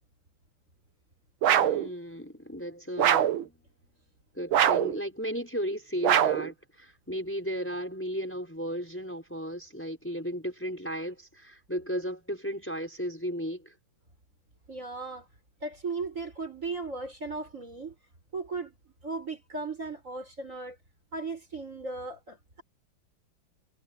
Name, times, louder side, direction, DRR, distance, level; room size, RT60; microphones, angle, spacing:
sound 1, 1.4-1.9 3.0-3.4 4.5-5.0 6.0-6.5, right 10 dB, 80° right, 1.8 m, -23 dB
voice 1, 1.5-3.6 4.3-13.7, equal, 5° left, 5.0 m, -35 dB
voice 2, 14.7-15.3 15.6-17.9 18.3-18.7 19.0-20.8 21.1-22.6, right 3 dB, 35° right, 6.4 m, -36 dB
omnidirectional pair, 2.2 m